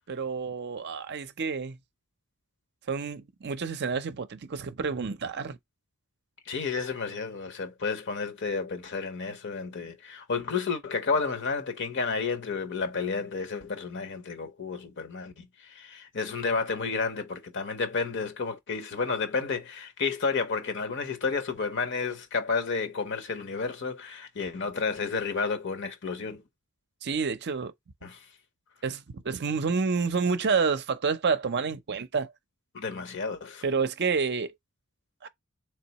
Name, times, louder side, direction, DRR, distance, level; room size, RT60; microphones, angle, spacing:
voice 1, 0.1-1.8 2.9-5.6 27.0-27.7 28.8-32.3 33.6-34.5 35.2-35.3, right 5 dB, 50° right, 0.5 m, -29 dB
voice 2, 6.5-26.4 28.0-28.2 32.7-33.6, left 4 dB, 55° left, 0.9 m, -31 dB
3.8 x 3.3 x 2.9 m
head